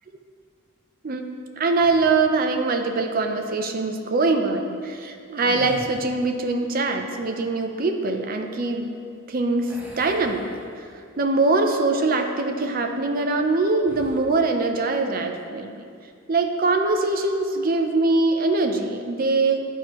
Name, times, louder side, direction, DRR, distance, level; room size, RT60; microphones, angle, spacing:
voice 1, 1.6-9.0 9.3-10.5 11.2-15.8 16.3-19.6, right 3 dB, 45° right, 5 dB, 0.5 m, -23 dB
sound 1, 1.7-2.4 5.3-6.4 9.7-11.1 11.6-11.8 13.8-14.3, equal, 10° right, 0.8 m, -43 dB
11.0 x 4.5 x 3.0 m, 2.4 s
head